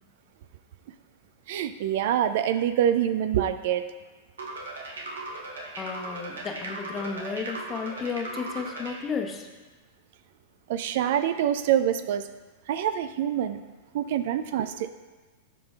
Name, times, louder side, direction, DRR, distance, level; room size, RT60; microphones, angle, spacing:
voice 1, 1.5-3.8 10.7-12.3 12.7-13.6 13.9-14.9, right 10 dB, 60° right, 12 dB, 0.4 m, -25 dB
sound 1, 4.4-9.0, right 2 dB, 80° right, 1.2 m, -37 dB
voice 2, 5.8-9.5, left 5 dB, 25° left, 3 dB, 0.9 m, -33 dB
13.5 x 5.1 x 2.4 m, 1.3 s
hypercardioid pair, 100°, 0 cm